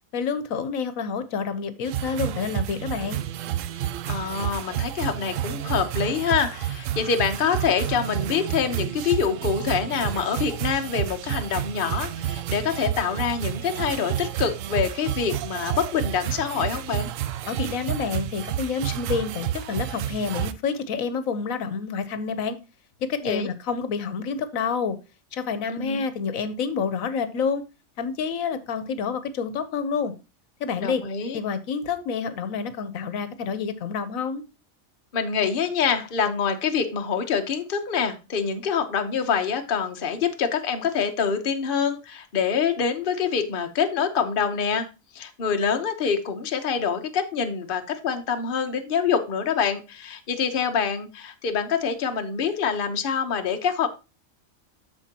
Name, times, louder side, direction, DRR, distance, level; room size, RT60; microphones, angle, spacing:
voice 1, 0.1-3.2 17.5-22.6 23.1-25.0 25.3-27.6 28.0-30.1 30.6-31.0 31.3-34.4, left 5 dB, 80° left, 1.2 m, -28 dB
sound 1, 1.8-20.5, right 11 dB, 75° right, 0.9 m, -30 dB
voice 2, 4.1-17.1 23.2-23.5 25.7-26.0 30.8-31.4 35.1-44.9 45.1-53.9, left 6 dB, 45° left, 1.0 m, -25 dB
13.5 x 4.5 x 2.8 m
omnidirectional pair, 1.4 m